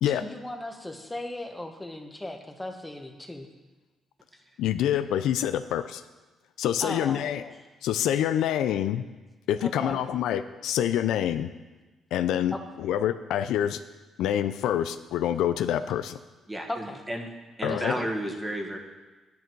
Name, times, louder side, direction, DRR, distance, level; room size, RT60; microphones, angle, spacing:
voice 1, 0.1-3.5 6.8-7.3 9.6-10.0 12.5-12.6 16.7-17.0 17.7-18.1, left 1 dB, 10° left, 5 dB, 1.2 m, -37 dB
voice 2, 4.6-6.0 6.6-7.5 7.8-9.0 9.5-11.5 12.1-13.8 14.2-16.2 17.6-18.0, left 10 dB, 85° left, 11 dB, 0.4 m, -26 dB
voice 3, 16.5-17.3 17.6-18.8, right 1 dB, 15° right, 2 dB, 1.6 m, -32 dB
10.0 x 9.5 x 4.6 m, 1.2 s
cardioid pair, 90°, 0 cm